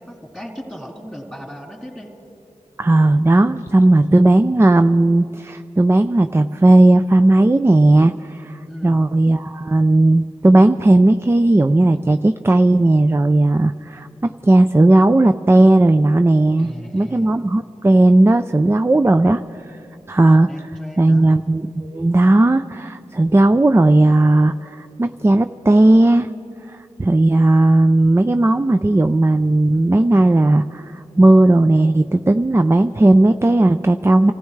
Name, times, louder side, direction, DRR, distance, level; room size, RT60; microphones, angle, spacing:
voice 1, 0.0-2.1 8.7-9.0 16.6-17.3 20.5-21.3, equal, ahead, -2 dB, 3.1 m, -36 dB
voice 2, 2.8-19.4 20.1-20.5 21.0-26.3 26.7-34.3, right 2 dB, 20° right, 10 dB, 0.4 m, -15 dB
26.5 x 15.0 x 3.2 m, 2.6 s
wide cardioid pair, 45°, 13 cm